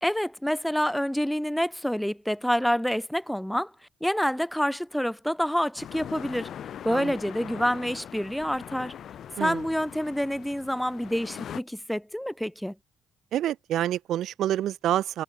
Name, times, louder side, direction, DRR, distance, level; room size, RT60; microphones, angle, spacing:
voice 1, 0.0-3.7 4.0-6.5 6.8-8.9 9.4-12.7, equal, ahead, 1.0 m, -27 dB
sound 1, 5.8-11.6, left 9 dB, 60° left, 1.8 m, -41 dB
voice 2, 13.3-15.2, right 12 dB, 75° right, 0.5 m, -27 dB
cardioid pair, 115°, 0 cm